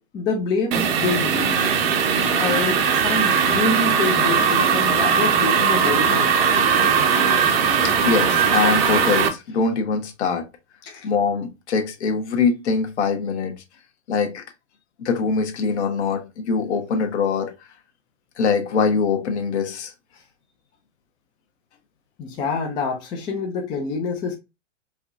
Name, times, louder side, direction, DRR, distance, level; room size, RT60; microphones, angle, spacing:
voice 1, 0.1-1.6 2.3-6.4 10.9-11.0 22.2-24.3, left 4 dB, 10° left, 0.4 m, -26 dB
sound 1, 0.7-9.3, right 6 dB, 50° right, 0.8 m, -19 dB
voice 2, 7.6-10.5 11.0-13.5 14.1-14.4 15.0-17.5 18.4-19.9, left 5 dB, 60° left, 1.0 m, -23 dB
4.8 x 2.3 x 2.5 m
hypercardioid pair, 120°, 38 cm